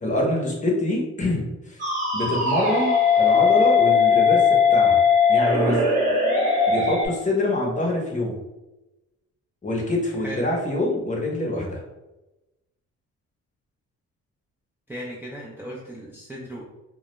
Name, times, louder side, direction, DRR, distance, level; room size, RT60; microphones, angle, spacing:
voice 1, 0.0-1.8 2.1-5.0 5.3-5.8 6.7-8.3 9.6-11.8, left 1 dB, 25° left, -1 dB, 0.7 m, -25 dB
sound 1, 1.8-7.1, left 5 dB, 25° right, 0.8 m, -19 dB
voice 2, 14.9-16.6, equal, 5° right, -5 dB, 0.4 m, -36 dB
2.2 x 2.0 x 2.9 m, 1.0 s
cardioid pair, 90°, 30 cm